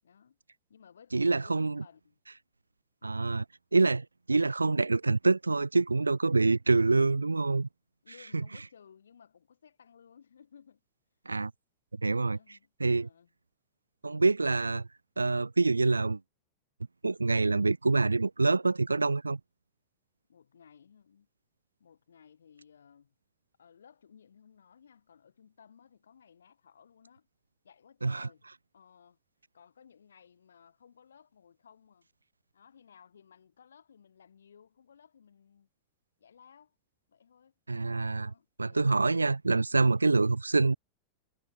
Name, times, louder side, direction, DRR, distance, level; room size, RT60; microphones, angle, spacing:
voice 1, 0.0-0.4 0.7-2.2 3.0-3.4 8.0-10.8 12.0-13.3 20.3-21.3 21.8-23.1 23.6-27.3 27.6-29.2 29.5-32.1 32.5-35.7 36.2-36.8 37.1-37.5 38.1-39.1, left 7 dB, 70° left, 7.3 m, -58 dB
voice 2, 1.1-1.8 3.0-3.4 3.7-7.7 11.3-11.5 12.0-12.4 12.8-13.1 14.0-14.9 15.2-16.2 17.0-19.4 28.0-28.3 37.7-38.3 38.6-40.8, right 3 dB, 80° right, 0.4 m, -26 dB
figure-of-eight pair, 90°, 0 cm